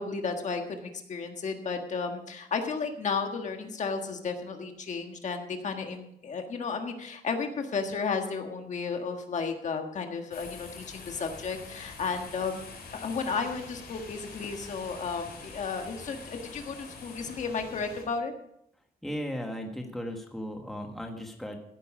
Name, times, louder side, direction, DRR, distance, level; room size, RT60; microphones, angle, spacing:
voice 1, 0.0-12.6 12.9-18.3, left 5 dB, 50° left, 5 dB, 1.5 m, -33 dB
sound 1, 10.3-18.0, left 4 dB, 80° left, 4.7 m, -46 dB
voice 2, 19.0-21.6, equal, ahead, 3 dB, 1.4 m, -36 dB
15.5 x 9.3 x 4.9 m, 0.75 s
wide cardioid pair, 180°, 16 cm